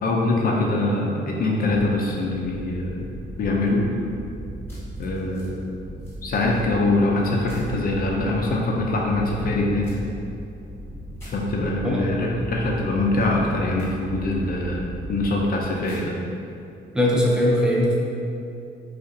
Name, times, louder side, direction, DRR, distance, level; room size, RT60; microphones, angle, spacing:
voice 1, 0.0-3.1 3.4-3.8 5.0-5.6 6.2-9.9 11.3-16.2, left 2 dB, 50° left, -1 dB, 0.5 m, -23 dB
sound 1, 1.6-15.9, right 1 dB, 45° right, 0.6 m, -37 dB
sound 2, 4.7-5.5 6.0-6.6 7.5-7.7 9.8-10.0 11.1-11.3 13.8-13.9 15.8-16.0, left 1 dB, 10° left, 1.3 m, -48 dB
voice 2, 16.9-17.9, left 1 dB, 5° right, -4 dB, 0.6 m, -20 dB
2.5 x 2.4 x 3.8 m, 2.6 s
cardioid pair, 90°, 20 cm